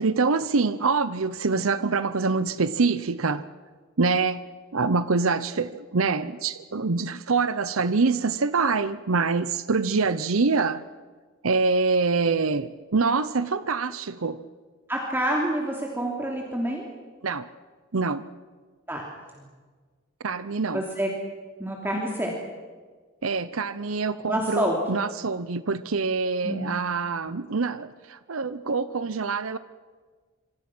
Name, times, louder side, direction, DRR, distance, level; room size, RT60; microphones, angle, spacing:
voice 1, 0.0-3.4 4.0-4.5 4.7-10.8 11.4-14.4 17.2-17.5 17.9-18.2 20.2-20.8 23.2-29.6, right 4 dB, 85° right, 14 dB, 0.8 m, -25 dB
voice 2, 14.9-16.9 18.9-19.0 19.3-19.4 20.7-21.1 21.6-22.3 24.2-24.8 26.4-26.8, right 1 dB, 10° right, -1 dB, 3.0 m, -27 dB
26.5 x 25.0 x 6.2 m, 1.5 s
head